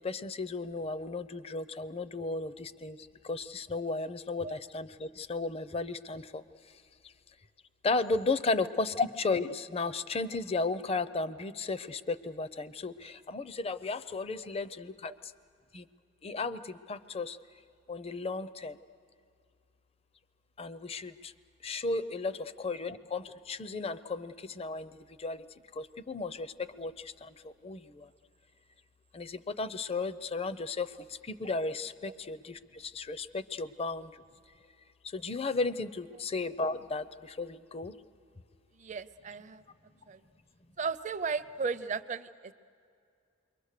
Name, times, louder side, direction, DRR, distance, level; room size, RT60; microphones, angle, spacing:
voice 1, 0.0-6.4 7.8-15.1 15.7-15.8 16.2-17.4 17.9-18.8 20.6-21.3 21.6-25.5 25.7-28.1 29.1-34.2 35.0-37.9, left 3 dB, 30° left, 14 dB, 0.5 m, -34 dB
voice 2, 38.8-39.6 40.1-40.2 40.8-42.5, right 5 dB, 40° right, 12 dB, 0.5 m, -35 dB
28.5 x 23.0 x 6.6 m, 2.4 s
head